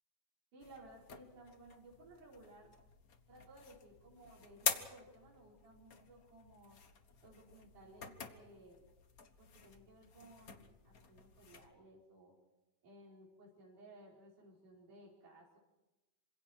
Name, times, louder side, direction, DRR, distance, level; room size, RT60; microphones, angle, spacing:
voice 1, 0.5-2.7 3.3-6.8 7.2-8.8 9.4-12.4 12.8-15.6, right 1 dB, 65° right, -4 dB, 6.4 m, -59 dB
sound 1, 0.6-11.7, left 6 dB, 75° left, 0.8 m, -46 dB
27.5 x 25.5 x 4.7 m, 1.0 s
omnidirectional pair, 3.9 m